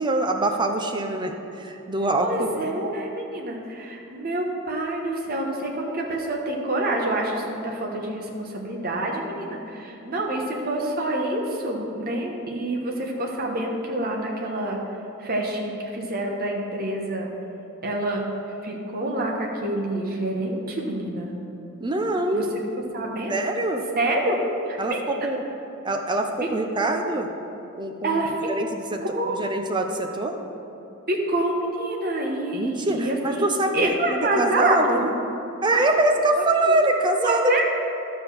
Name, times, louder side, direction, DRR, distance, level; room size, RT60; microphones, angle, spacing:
voice 1, 0.0-2.5 21.8-22.5 23.3-23.8 24.8-25.4 25.8-27.3 27.8-28.2 28.5-29.0 29.3-30.4 32.5-35.1 35.6-37.6, right 2 dB, 20° right, 4 dB, 0.6 m, -24 dB
voice 2, 2.2-14.8 15.2-17.3 17.8-18.3 18.6-21.3 22.3-22.4 22.9-23.4 23.9-24.4 24.7-25.0 26.4-26.5 26.8-27.0 28.0-28.5 29.0-29.3 31.1-33.5 33.7-35.0 35.7-35.9 36.6-36.7 37.2-37.6, right 1 dB, 45° right, 0 dB, 1.2 m, -27 dB
12.0 x 4.4 x 6.7 m, 2.9 s
head